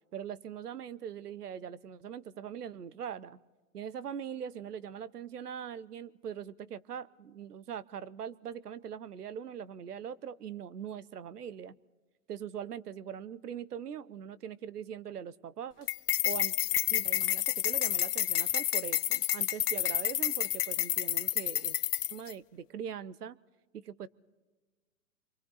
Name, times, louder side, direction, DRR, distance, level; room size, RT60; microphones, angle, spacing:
voice 1, 0.1-3.4 3.7-11.7 12.3-15.9 16.2-16.5 16.9-21.8 22.1-23.4 23.7-24.1, right 8 dB, 90° right, 18 dB, 0.9 m, -41 dB
sound 1, 15.9-22.3, left 14 dB, 85° left, 0.5 m, -30 dB
28.5 x 23.5 x 4.1 m, 1.3 s
hypercardioid pair, 140°, 45 cm